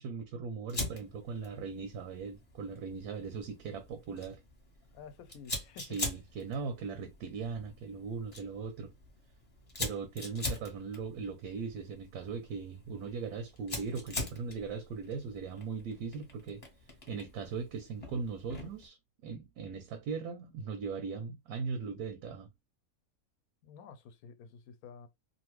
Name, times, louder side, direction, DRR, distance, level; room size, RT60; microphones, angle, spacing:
voice 1, 0.0-4.4 5.8-8.9 9.8-16.6 17.1-19.0 19.2-22.5, right 5 dB, 85° right, 1.1 m, -39 dB
Fire, 0.7-18.9, left 2 dB, 25° left, 1.0 m, -44 dB
voice 2, 4.9-6.0 23.6-25.1, left 6 dB, 80° left, 1.1 m, -51 dB
2.7 x 2.5 x 3.0 m
omnidirectional pair, 1.6 m